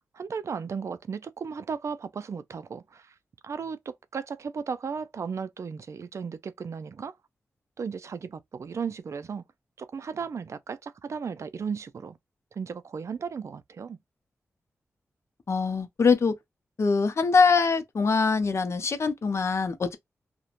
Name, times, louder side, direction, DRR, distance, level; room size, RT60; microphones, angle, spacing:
voice 1, 0.1-3.1 3.4-7.1 7.8-9.4 9.8-12.2 12.5-14.0, right 6 dB, 60° right, 0.4 m, -35 dB
voice 2, 15.5-16.3 16.8-20.0, left 5 dB, 55° left, 0.5 m, -23 dB
2.4 x 2.1 x 2.9 m
cardioid pair, 65°, 6 cm